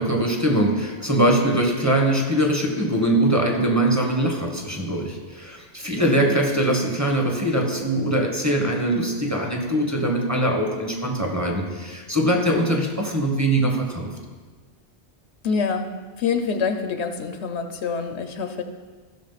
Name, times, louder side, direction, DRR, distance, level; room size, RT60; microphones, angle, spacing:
voice 1, 0.0-14.1, right 1 dB, 15° right, 1 dB, 1.4 m, -22 dB
voice 2, 6.0-6.3 15.4-15.9 16.2-18.6, left 5 dB, 85° left, 7 dB, 1.1 m, -26 dB
15.0 x 6.4 x 4.1 m, 1.4 s
omnidirectional pair, 1.1 m